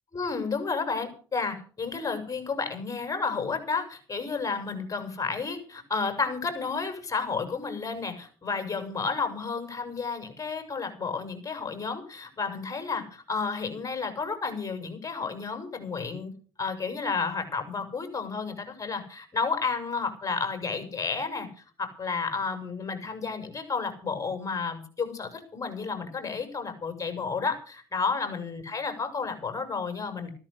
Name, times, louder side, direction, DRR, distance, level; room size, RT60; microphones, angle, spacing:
voice 1, 0.1-16.3 16.6-30.3, left 4 dB, 35° left, 7 dB, 6.5 m, -31 dB
15.0 x 13.0 x 6.6 m, 0.42 s
supercardioid pair, 60°, 10 cm